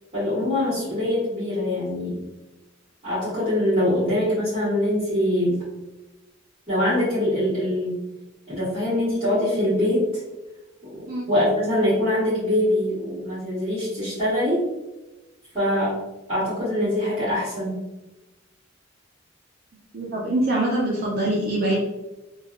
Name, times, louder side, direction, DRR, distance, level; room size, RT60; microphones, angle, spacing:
voice 1, 0.1-2.2 3.0-5.5 6.7-8.0 8.5-10.2 11.3-14.6 15.5-16.0 16.3-17.8, left 1 dB, 30° right, -14 dB, 1.5 m, -23 dB
voice 2, 19.9-21.8, right 1 dB, 50° right, -4 dB, 0.5 m, -24 dB
3.1 x 2.3 x 2.4 m, 1.1 s
head